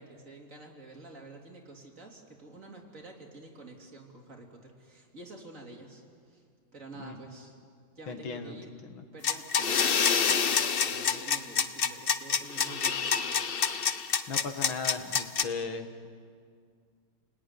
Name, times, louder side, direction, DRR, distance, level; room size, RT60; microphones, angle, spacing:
voice 1, 0.0-6.5 6.7-7.6 8.0-8.7 9.1-13.5, right 2 dB, 40° right, 0 dB, 3.5 m, -48 dB
voice 2, 8.1-9.0 14.3-16.1, left 4 dB, 90° left, 7 dB, 2.5 m, -37 dB
sound 1, 9.2-15.4, left 6 dB, 60° left, 0.6 m, -27 dB
29.5 x 19.5 x 10.0 m, 2.2 s
omnidirectional pair, 2.1 m